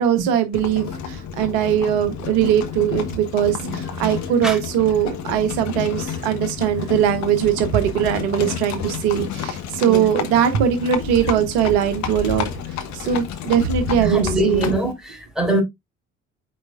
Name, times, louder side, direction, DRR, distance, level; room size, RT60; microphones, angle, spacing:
voice 1, 0.0-12.5 12.9-14.7, right 9 dB, 65° right, 1.0 m, -20 dB
Livestock farm animals working animals, 0.5-14.9, left 7 dB, 50° left, 1.3 m, -30 dB
voice 2, 3.6-4.2 4.4-4.6 9.8-10.0 14.0-15.6, right 1 dB, ahead, 3.4 m, -24 dB
9.3 x 4.2 x 2.4 m
figure-of-eight pair, 50°, 35 cm